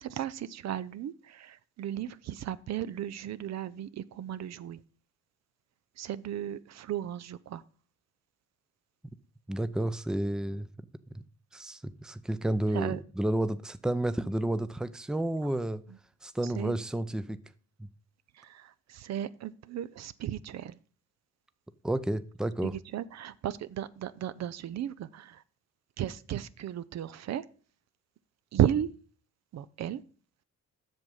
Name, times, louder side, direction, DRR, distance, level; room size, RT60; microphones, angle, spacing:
voice 1, 0.0-4.8 6.0-7.6 12.7-13.0 16.4-16.8 18.4-20.8 22.6-25.4 26.0-27.4 28.5-28.9 29.5-30.0, right 11 dB, 60° right, 0.6 m, -34 dB
voice 2, 9.5-10.7 11.1-11.2 11.5-15.8 16.2-17.4 17.8-17.9 21.8-22.7, right 1 dB, ahead, 0.6 m, -31 dB
7.9 x 6.4 x 5.4 m
cardioid pair, 90°, 30 cm